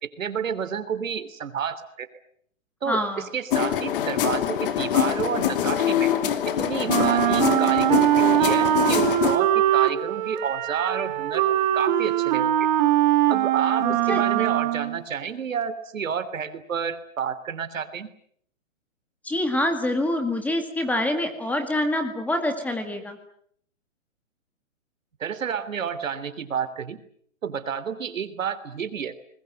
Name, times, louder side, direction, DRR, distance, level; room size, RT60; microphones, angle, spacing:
voice 1, 0.0-2.1 2.8-6.1 6.5-11.5 11.7-12.7 13.3-18.1 25.2-27.0 27.4-29.2, right 7 dB, 80° right, 12 dB, 3.2 m, -30 dB
voice 2, 2.9-3.2 13.8-14.5 19.2-23.2, left 1 dB, 5° left, 6 dB, 2.0 m, -26 dB
sound 1, 3.5-9.4, left 10 dB, 40° left, 2.7 m, -24 dB
Wind instrument woodwind instrument, 6.9-15.0, right 13 dB, 35° right, 1.8 m, -22 dB
28.5 x 21.5 x 7.8 m, 0.65 s
hypercardioid pair, 160°, 39 cm